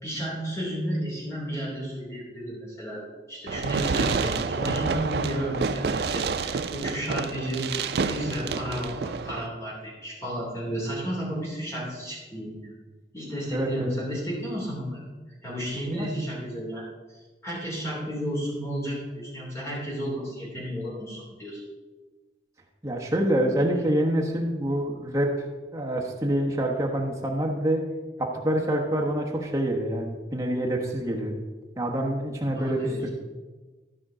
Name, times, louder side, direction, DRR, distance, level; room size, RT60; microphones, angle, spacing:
voice 1, 0.0-3.0 3.3-7.7 8.0-12.6 13.1-15.1 15.4-21.6 32.5-33.0, equal, 15° left, -4 dB, 3.0 m, -32 dB
Fireworks, 3.5-9.5, right 5 dB, 60° right, 0.4 m, -29 dB
voice 2, 13.5-14.0 15.9-16.1 22.8-25.3 25.7-27.8 28.2-31.4 31.8-33.1, right 1 dB, 15° right, -1 dB, 1.1 m, -26 dB
13.5 x 5.3 x 5.0 m, 1.3 s
head